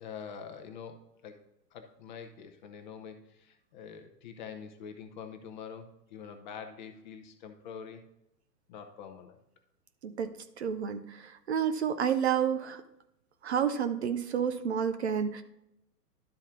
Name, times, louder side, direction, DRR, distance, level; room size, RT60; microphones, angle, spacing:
voice 1, 0.0-1.4 1.7-8.0 8.7-9.4, left 6 dB, 30° left, 6 dB, 0.8 m, -45 dB
voice 2, 10.6-12.8 13.4-15.4, right 8 dB, 40° right, 8 dB, 0.6 m, -30 dB
12.0 x 4.2 x 3.7 m, 0.83 s
figure-of-eight pair, 115°, 50 cm